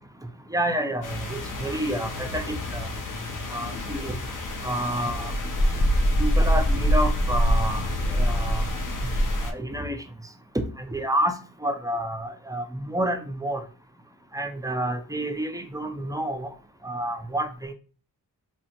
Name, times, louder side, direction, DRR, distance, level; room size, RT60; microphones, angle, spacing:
voice 1, 0.5-2.9 3.5-4.1 4.6-5.3 6.2-7.8 8.1-8.7 9.4-10.0 10.5-11.3 11.6-13.6 14.3-16.5 16.8-17.7, right 1 dB, 10° right, 6 dB, 0.5 m, -29 dB
sound 1, 1.0-9.5, equal, 50° left, 0.6 m, -25 dB
3.6 x 2.0 x 2.8 m, 0.38 s
cardioid pair, 45°, 40 cm